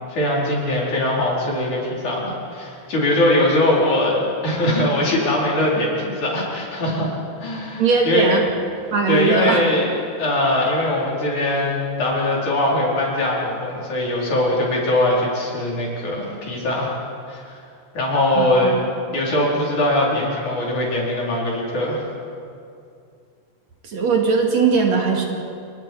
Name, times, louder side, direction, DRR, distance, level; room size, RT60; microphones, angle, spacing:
voice 1, 0.1-7.1 7.4-8.3 9.1-9.9 10.2-16.9 17.3-17.6 17.9-18.8 19.1-22.1, left 1 dB, 65° left, -4 dB, 6.0 m, -21 dB
voice 2, 7.8-8.4 8.9-9.6 18.4-18.8 23.8-25.2, right 4 dB, 60° right, 0 dB, 3.4 m, -19 dB
28.5 x 24.0 x 4.8 m, 2.4 s
omnidirectional pair, 3.6 m